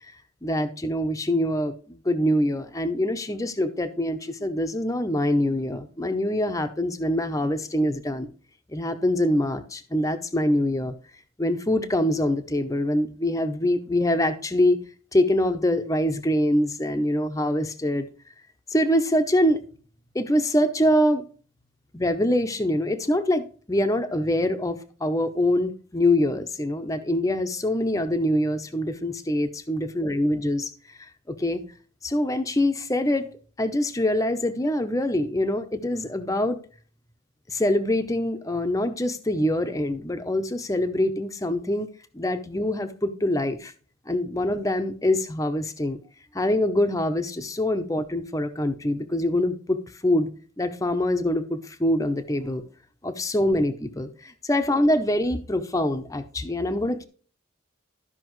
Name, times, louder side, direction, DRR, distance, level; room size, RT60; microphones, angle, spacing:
voice 1, 0.4-8.3 8.7-10.9 11.4-14.8 15.1-18.1 18.7-19.6 20.1-21.2 21.9-30.7 31.0-31.6 32.0-33.3 33.6-36.6 37.5-41.9 42.1-43.7 44.1-46.0 46.3-50.3 50.6-52.6 53.0-57.1, left 1 dB, 15° left, 0.7 m, -24 dB
13.5 x 5.7 x 3.1 m
head